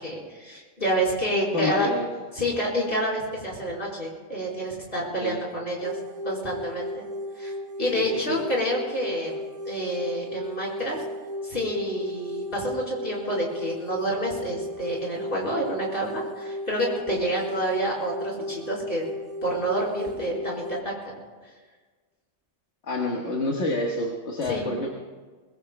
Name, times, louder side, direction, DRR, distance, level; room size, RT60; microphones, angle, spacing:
voice 1, 0.0-1.9 2.3-6.0 6.2-7.0 7.4-9.3 9.6-11.0 11.4-19.0 19.4-21.1 24.4-24.9, right 1 dB, 45° left, -4 dB, 4.7 m, -28 dB
voice 2, 1.5-2.1 5.2-5.4 8.0-8.4 22.8-24.9, left 2 dB, 60° left, 0 dB, 1.8 m, -28 dB
sound 1, 5.8-20.8, left 1 dB, 40° right, 0.6 m, -35 dB
23.0 x 20.5 x 2.2 m, 1.4 s
omnidirectional pair, 1.3 m